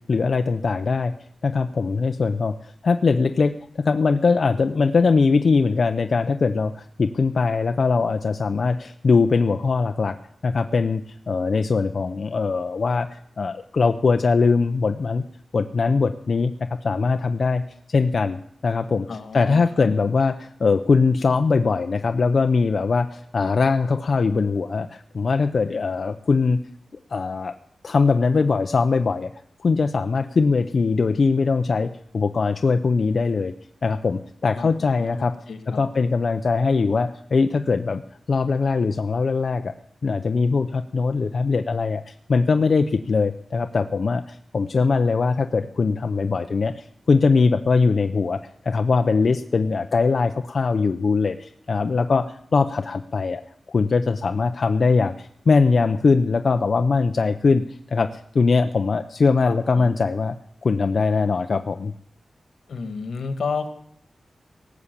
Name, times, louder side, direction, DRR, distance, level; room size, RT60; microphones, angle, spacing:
voice 1, 0.1-1.1 1.4-10.2 10.4-11.0 11.3-15.2 15.5-16.5 16.8-17.6 17.9-19.1 19.3-26.6 27.1-27.5 27.8-29.3 29.6-33.5 33.8-35.3 35.8-38.0 38.3-39.7 40.0-48.4 48.6-53.4 53.7-60.3 60.6-61.9, left 4 dB, 50° left, 7 dB, 0.6 m, -21 dB
voice 2, 19.1-19.9 34.5-35.8 59.4-59.9 62.7-63.7, left 5 dB, 80° left, 9 dB, 1.8 m, -32 dB
18.0 x 7.2 x 8.3 m, 0.71 s
wide cardioid pair, 160°, 0 cm